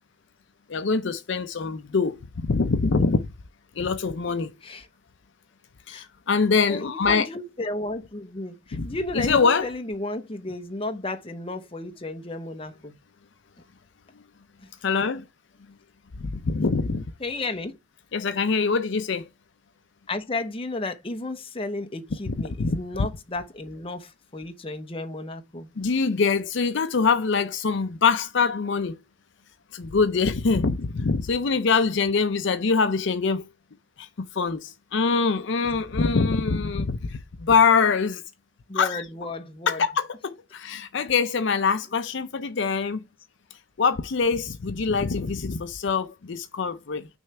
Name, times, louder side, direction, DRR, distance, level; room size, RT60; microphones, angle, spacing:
voice 1, 0.7-3.3 3.8-4.5 5.9-7.3 8.7-8.9 9.1-9.7 14.8-15.2 16.2-17.1 18.1-19.3 22.3-23.1 25.8-29.0 29.7-33.4 34.0-38.2 38.7-39.0 39.7-43.0 43.8-47.1, left 5 dB, 60° left, 0.5 m, -24 dB
voice 2, 6.7-12.9 17.2-17.8 20.1-25.7 38.7-39.8, left 2 dB, 25° left, 0.8 m, -33 dB
6.3 x 3.2 x 5.8 m
head